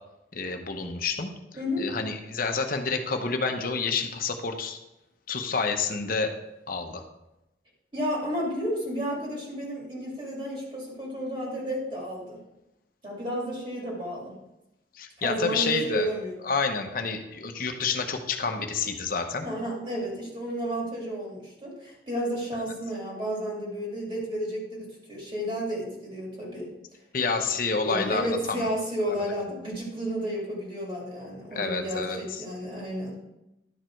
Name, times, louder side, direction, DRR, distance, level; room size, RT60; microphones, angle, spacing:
voice 1, 0.3-1.3 1.8-4.8 5.3-6.3 6.7-7.0 14.9-16.1 16.4-19.5 27.1-28.7 31.5-32.4, left 4 dB, 50° left, 5 dB, 0.9 m, -29 dB
voice 2, 1.5-1.9 7.9-12.4 13.0-14.3 15.2-16.4 19.4-26.7 27.7-33.2, equal, 30° right, -3 dB, 2.3 m, -32 dB
11.0 x 4.9 x 4.5 m, 0.91 s
head